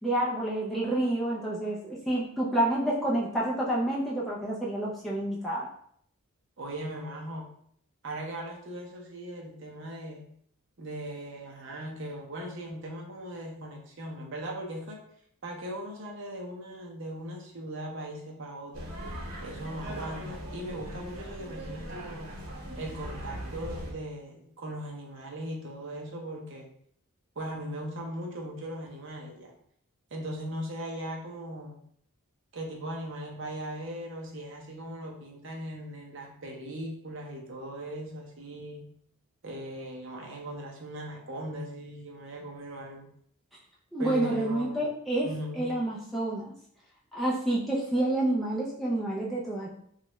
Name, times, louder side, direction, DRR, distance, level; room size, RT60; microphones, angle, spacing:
voice 1, 0.0-5.7 43.9-45.3 45.6-46.5 47.1-49.7, right 1 dB, ahead, -6 dB, 0.4 m, -28 dB
voice 2, 6.6-7.5 8.0-10.3 10.8-15.0 15.4-19.0 19.4-22.4 22.8-26.7 27.4-29.5 30.1-31.8 32.5-38.9 39.4-43.1 44.0-44.8 45.2-45.7, right 1 dB, 55° right, 0 dB, 0.6 m, -39 dB
sound 1, 18.7-23.9, right 1 dB, 85° right, 0.9 m, -40 dB
3.0 x 2.3 x 3.0 m, 0.66 s
head